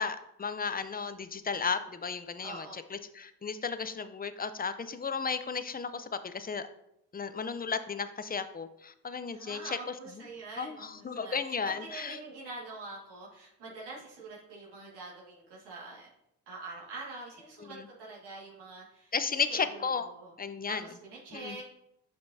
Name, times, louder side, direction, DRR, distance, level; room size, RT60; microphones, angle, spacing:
voice 1, 0.0-6.7 7.1-9.8 10.6-12.2 17.7-17.9 19.1-20.0 20.4-20.8 21.3-21.6, left 5 dB, 25° left, 11 dB, 0.6 m, -34 dB
voice 2, 2.4-2.7 9.3-16.1 16.5-19.1 19.5-20.3 20.7-21.6, right 3 dB, 80° right, -4 dB, 2.0 m, -45 dB
7.8 x 5.2 x 2.7 m, 0.80 s
supercardioid pair, 55°, 39 cm